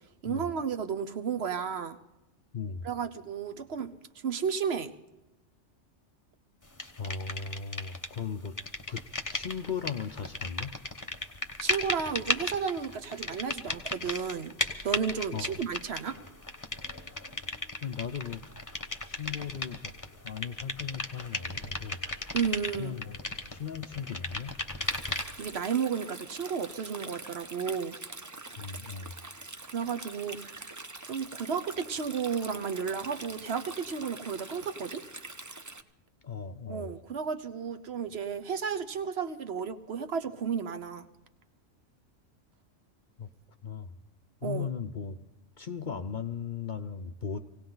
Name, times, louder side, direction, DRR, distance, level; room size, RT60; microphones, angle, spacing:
voice 1, 0.2-2.0 2.8-3.9 4.2-4.9 11.6-14.5 14.8-16.2 22.3-23.0 25.4-27.9 29.7-30.7 31.1-35.0 36.7-41.1 44.4-44.7, right 6 dB, 60° right, 9 dB, 1.1 m, -33 dB
voice 2, 2.5-2.9 7.0-8.6 8.9-10.8 15.3-15.6 17.8-18.4 19.1-19.9 20.2-22.0 22.8-23.2 23.5-24.6 28.6-29.2 30.2-30.4 36.2-36.9 43.2-43.3 43.6-43.9 44.4-45.2 45.6-47.4, left 6 dB, 50° left, 8 dB, 0.7 m, -37 dB
sound 1, 6.8-8.2 8.4-25.5, left 2 dB, 15° left, 1.0 m, -36 dB
Stream, 24.8-35.8, right 2 dB, 20° right, 0.5 m, -45 dB
19.5 x 17.5 x 3.9 m, 0.97 s
omnidirectional pair, 1.3 m